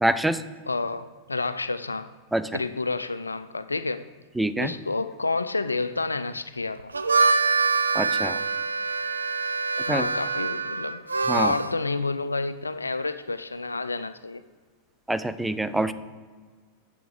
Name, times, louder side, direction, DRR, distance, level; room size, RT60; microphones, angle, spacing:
voice 1, 0.0-0.4 2.3-2.5 4.4-4.7 7.9-8.4 9.9-10.1 11.3-11.5 15.1-15.9, right 1 dB, 5° right, 0.5 m, -25 dB
voice 2, 0.7-2.1 2.5-4.1 4.6-6.9 9.9-11.0 11.3-14.4, left 3 dB, 80° left, 0.3 m, -29 dB
Harmonica, 6.8-11.7, right 4 dB, 75° right, 0.3 m, -25 dB
8.8 x 7.1 x 3.6 m
figure-of-eight pair, 90°, 0 cm